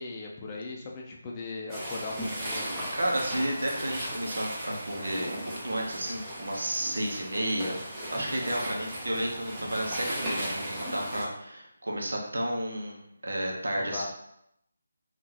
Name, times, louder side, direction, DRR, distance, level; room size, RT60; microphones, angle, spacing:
voice 1, 0.0-2.9 8.1-8.4 13.8-14.1, left 3 dB, 25° left, -1 dB, 0.5 m, -39 dB
sound 1, 1.7-11.2, right 1 dB, 20° right, 0.8 m, -36 dB
voice 2, 2.9-7.8 8.1-14.1, right 1 dB, 75° right, -1 dB, 0.8 m, -32 dB
3.7 x 2.5 x 2.9 m, 0.75 s
figure-of-eight pair, 155°, 0 cm